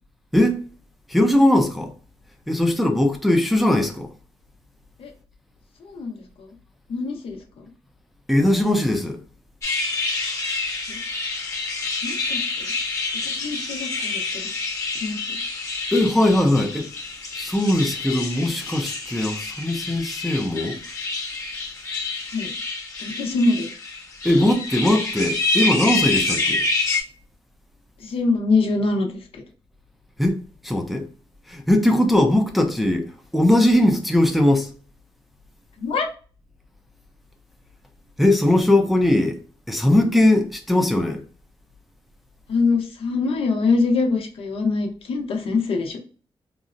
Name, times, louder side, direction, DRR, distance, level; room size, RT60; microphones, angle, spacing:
voice 1, 0.3-0.6 1.1-1.9 2.5-4.1 8.3-9.2 15.9-16.9 17.4-20.8 24.2-26.7 30.2-31.1 31.5-34.7 38.2-39.4 39.7-41.2, left 1 dB, ahead, 0.4 m, -20 dB
voice 2, 5.8-6.5 6.9-7.6 10.9-11.0 12.0-12.7 13.2-14.2 15.0-15.4 22.3-22.5 23.0-23.7 28.0-29.1 35.8-36.1 42.5-46.0, left 3 dB, 75° left, 0.7 m, -24 dB
sound 1, 9.6-27.0, left 3 dB, 30° left, 1.0 m, -27 dB
3.8 x 2.0 x 2.5 m
cardioid pair, 100°, 10 cm